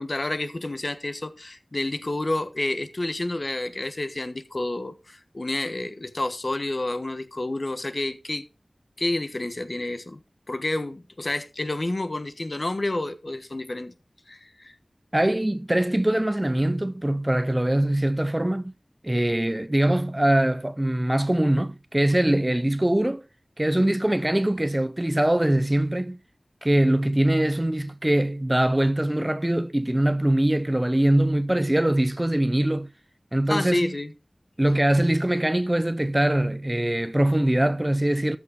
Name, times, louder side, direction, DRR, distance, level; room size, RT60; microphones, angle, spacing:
voice 1, 0.0-8.4 9.0-10.2 10.5-13.9 14.3-14.7 33.5-34.1, left 2 dB, 50° left, 1.2 m, -29 dB
voice 2, 15.1-18.7 19.0-23.2 23.6-26.2 26.6-32.9 33.3-33.9 34.6-38.4, right 1 dB, 20° right, 0.7 m, -22 dB
13.5 x 6.3 x 3.6 m
wide cardioid pair, 50°, 0 cm